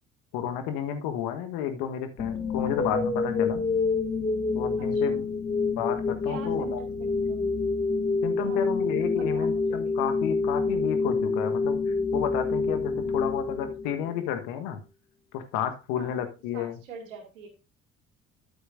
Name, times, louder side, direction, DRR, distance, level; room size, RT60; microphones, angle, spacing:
voice 1, 0.3-3.6 4.5-5.2 5.8-6.8 8.2-11.8 12.1-14.8 15.3-16.8, left 9 dB, 65° left, 8 dB, 1.4 m, -31 dB
sound 1, 2.2-14.2, left 4 dB, 20° left, 1.2 m, -27 dB
voice 2, 4.8-5.2 6.2-7.4 8.4-8.6 9.1-9.9 12.9-13.2 15.9-16.2 16.5-17.5, right 4 dB, 75° right, 3 dB, 2.3 m, -44 dB
12.5 x 6.8 x 2.6 m, 0.31 s
figure-of-eight pair, 50°, 39 cm